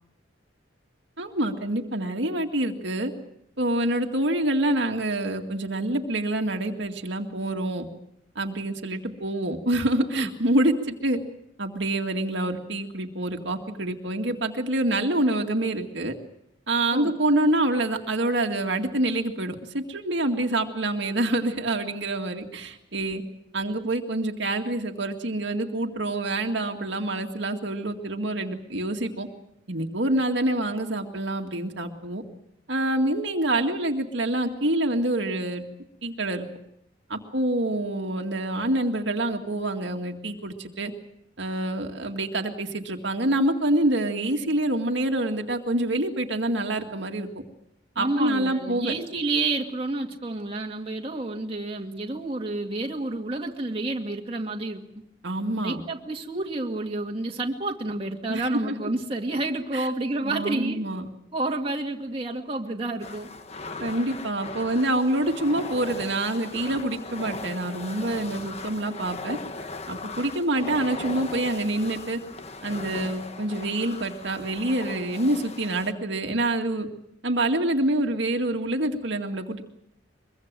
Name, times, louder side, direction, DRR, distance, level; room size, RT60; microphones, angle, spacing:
voice 1, 1.2-3.1 3.6-7.9 8.4-11.2 11.6-16.1 16.7-23.2 23.5-29.3 29.7-32.2 32.7-35.6 36.0-36.5 37.1-40.9 41.4-47.3 48.0-48.9 55.2-55.8 58.3-58.8 59.7-59.9 60.2-61.1 63.8-69.4 69.9-72.2 72.6-76.9 77.2-79.6, right 1 dB, 65° right, 3 dB, 2.1 m, -26 dB
voice 2, 48.0-54.8 55.6-60.8 61.3-63.3, right 2 dB, 30° right, 1 dB, 2.2 m, -29 dB
sound 1, 63.0-75.9, left 3 dB, 30° left, 1.3 m, -38 dB
23.5 x 23.0 x 7.6 m, 0.73 s
head